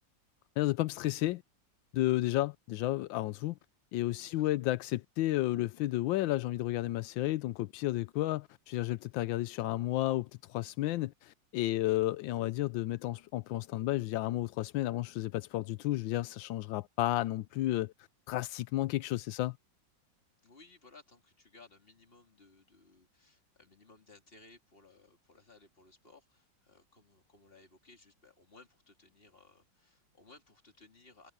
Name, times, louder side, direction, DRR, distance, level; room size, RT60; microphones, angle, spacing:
voice 1, 0.6-1.4 1.9-3.5 3.9-17.9 18.3-19.6, left 16 dB, 85° left, 1.3 m, -32 dB
voice 2, 4.2-4.6 20.4-31.3, left 3 dB, 30° left, 3.3 m, -60 dB
omnidirectional pair, 2.0 m